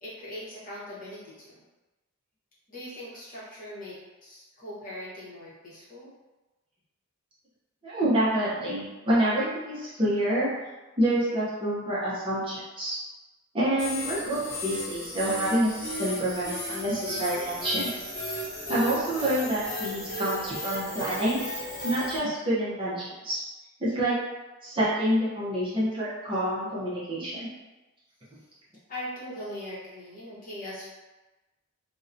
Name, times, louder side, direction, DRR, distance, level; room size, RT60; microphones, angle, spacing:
voice 1, 0.0-1.6 2.7-6.1 28.9-30.8, left 1 dB, 35° left, -8 dB, 0.8 m, -40 dB
voice 2, 7.8-10.5 11.0-13.0 13.5-17.9 18.7-21.5 21.8-23.4 23.8-24.2 24.6-27.5, right 1 dB, 25° right, -8 dB, 0.5 m, -27 dB
sound 1, 13.8-22.2, equal, 15° left, 1.0 m, -35 dB
2.6 x 2.0 x 2.4 m, 1.1 s
head